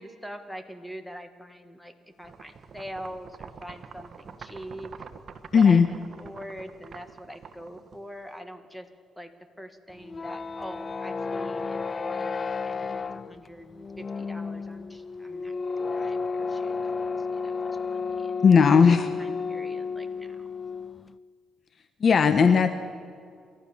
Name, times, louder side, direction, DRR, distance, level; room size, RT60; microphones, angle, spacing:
voice 1, 0.0-4.9 5.5-5.8 6.2-8.9 9.2-9.3 9.6-12.3 12.6-17.5 17.8-18.3 18.7-18.9 19.2-20.4, equal, 5° left, 8 dB, 2.0 m, -43 dB
sound 1, 2.2-8.4, right 5 dB, 50° right, 1.4 m, -46 dB
voice 2, 5.5-5.9 18.4-19.1 22.0-22.8, left 6 dB, 50° left, 10 dB, 1.1 m, -17 dB
sound 2, 9.9-21.1, left 4 dB, 35° left, 0.6 m, -32 dB
29.0 x 14.0 x 7.2 m, 2.2 s
cardioid pair, 90°, 0 cm